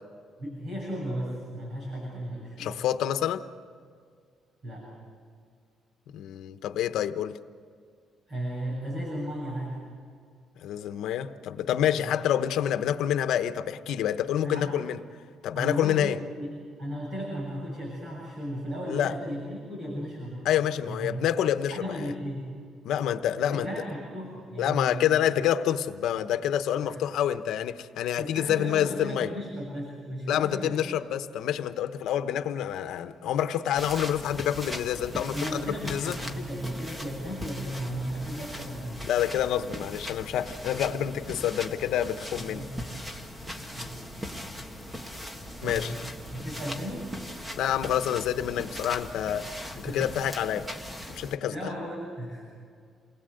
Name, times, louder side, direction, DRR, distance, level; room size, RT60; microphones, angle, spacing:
voice 1, 0.4-2.8 4.6-4.9 8.3-9.8 11.9-12.1 14.4-14.7 15.5-20.5 20.9-21.3 21.7-22.5 23.5-25.1 26.8-27.0 28.2-30.9 35.3-39.0 42.5-43.0 43.4-44.4 45.4-46.0 46.3-47.1 49.9-50.0 51.5-52.4, equal, 45° right, -3 dB, 7.8 m, -35 dB
voice 2, 2.6-3.4 6.1-7.4 10.6-15.0 15.4-16.2 18.9-19.1 20.4-22.1 22.8-23.7 24.6-29.3 30.3-36.2 39.1-42.6 45.6-45.9 47.6-49.5 49.8-50.7 51.1-51.8, left 10 dB, 75° left, 10 dB, 1.1 m, -27 dB
sound 1, 33.7-51.4, equal, 10° right, 1.6 m, -39 dB
29.0 x 20.5 x 8.0 m, 2.2 s
cardioid pair, 145°, 0 cm